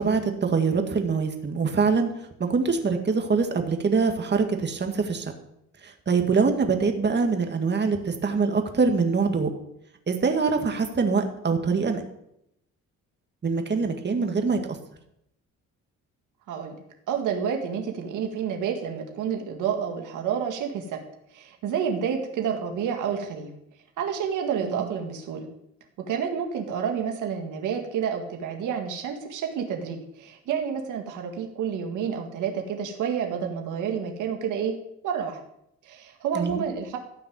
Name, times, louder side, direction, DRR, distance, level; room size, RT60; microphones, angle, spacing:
voice 1, 0.0-2.1 2.4-5.3 5.8-9.5 10.1-12.0 13.4-14.8 24.6-24.9 36.3-36.6, right 4 dB, 35° right, 5 dB, 2.0 m, -24 dB
voice 2, 17.1-21.0 21.3-23.5 24.0-25.5 26.0-34.7 35.0-35.4 35.8-37.0, right 7 dB, 85° right, 3 dB, 2.0 m, -29 dB
14.0 x 5.7 x 9.3 m, 0.78 s
cardioid pair, 90°, 30 cm